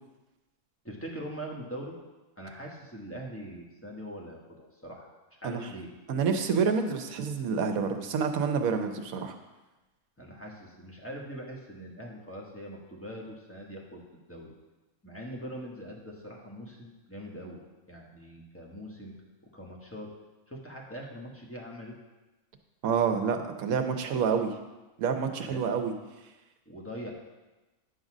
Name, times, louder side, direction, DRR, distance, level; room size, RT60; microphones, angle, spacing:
voice 1, 0.8-1.9 2.4-5.9 10.2-14.0 14.3-14.5 15.0-17.6 17.9-19.1 19.5-20.1 20.5-22.0 25.5-25.7 26.6-27.1, equal, 10° left, -2 dB, 1.1 m, -42 dB
voice 2, 6.1-9.3 22.8-24.5 25.0-25.9, right 6 dB, 70° right, 6 dB, 1.2 m, -28 dB
9.7 x 4.0 x 6.1 m, 1.1 s
omnidirectional pair, 1.6 m